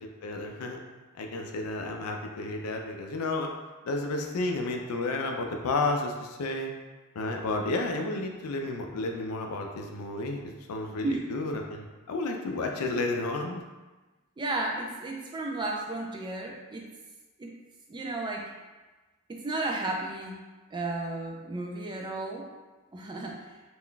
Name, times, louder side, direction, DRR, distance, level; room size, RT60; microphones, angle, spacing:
voice 1, 0.2-0.8 1.2-3.5 3.8-6.7 7.1-13.6, left 2 dB, 80° left, 3 dB, 0.4 m, -31 dB
voice 2, 14.4-16.9 17.4-17.5 17.9-18.5 19.3-20.4 20.7-22.5 22.9-23.5, right 2 dB, 20° right, 0 dB, 0.3 m, -33 dB
2.4 x 2.2 x 3.7 m, 1.2 s
head